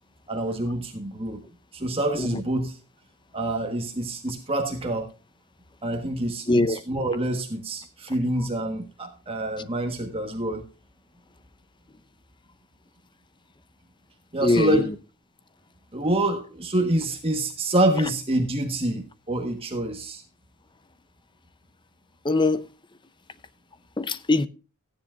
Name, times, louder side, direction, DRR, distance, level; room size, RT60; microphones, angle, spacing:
voice 1, 0.3-1.4 1.7-2.8 3.3-5.1 5.8-10.6 14.3-14.9 15.9-20.2, right 1 dB, 25° right, 1.4 m, -26 dB
voice 2, 6.5-6.8 14.4-14.8 22.2-22.6 24.0-24.5, left 2 dB, 20° left, 0.7 m, -22 dB
15.5 x 9.9 x 2.5 m
head